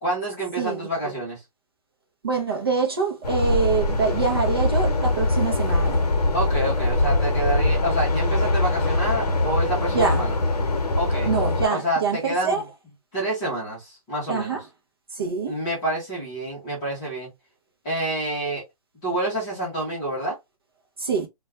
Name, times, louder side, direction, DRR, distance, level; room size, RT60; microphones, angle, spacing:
voice 1, 0.0-1.4 6.3-10.3 10.9-11.3 11.7-12.6 13.1-14.6 15.5-17.3 17.8-18.6 19.0-20.4, right 1 dB, 10° left, 0.7 m, -28 dB
voice 2, 0.6-1.1 2.2-6.0 9.9-10.2 11.3-12.6 14.3-14.6 15.1-15.5 21.0-21.3, right 5 dB, 40° right, 0.6 m, -25 dB
sound 1, 3.2-11.7, left 2 dB, 80° left, 0.8 m, -22 dB
2.3 x 2.2 x 3.0 m
hypercardioid pair, 180°, 20 cm